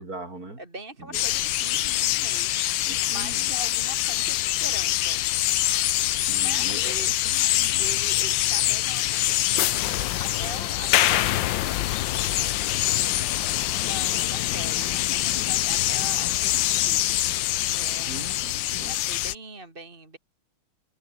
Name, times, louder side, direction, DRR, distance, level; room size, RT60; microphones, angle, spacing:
voice 1, 0.0-0.6 1.0-1.4 2.9-3.5 6.2-8.0 18.0-19.0, right 2 dB, 50° right, 6.1 m, -41 dB
voice 2, 0.6-5.2 6.4-7.1 7.8-13.2 13.8-17.0 17.7-18.4 18.8-20.2, right 1 dB, 30° right, 3.7 m, -42 dB
sound 1, 1.1-19.4, left 15 dB, 90° left, 1.4 m, -24 dB
omnidirectional pair, 2.0 m